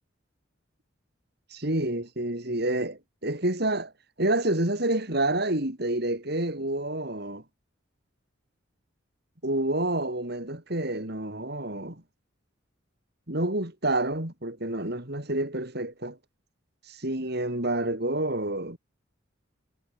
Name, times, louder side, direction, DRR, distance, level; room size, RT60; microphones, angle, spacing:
voice 1, 1.5-3.9 4.2-7.4 9.4-12.0 13.3-16.2 16.9-18.8, right 1 dB, 55° right, 4.3 m, -28 dB
head